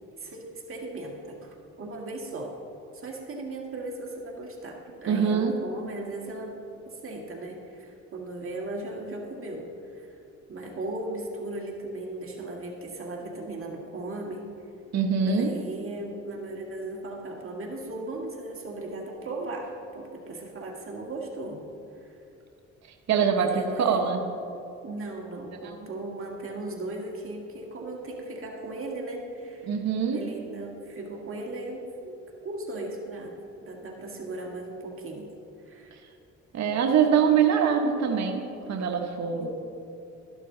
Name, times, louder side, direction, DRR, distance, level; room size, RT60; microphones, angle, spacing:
voice 1, 0.1-2.5 2.9-6.5 6.9-10.1 10.5-14.4 15.2-21.6 22.0-22.2 23.4-24.1 24.8-29.7 30.1-33.3 33.6-35.3 35.6-36.0 39.3-39.5, right 2 dB, 45° right, -1 dB, 1.9 m, -37 dB
voice 2, 5.1-5.5 14.9-15.5 23.1-24.2 25.6-25.9 29.7-30.2 36.5-39.5, right 6 dB, 60° right, 3 dB, 1.2 m, -24 dB
13.5 x 11.5 x 3.9 m, 2.7 s
cardioid pair, 90°, 30 cm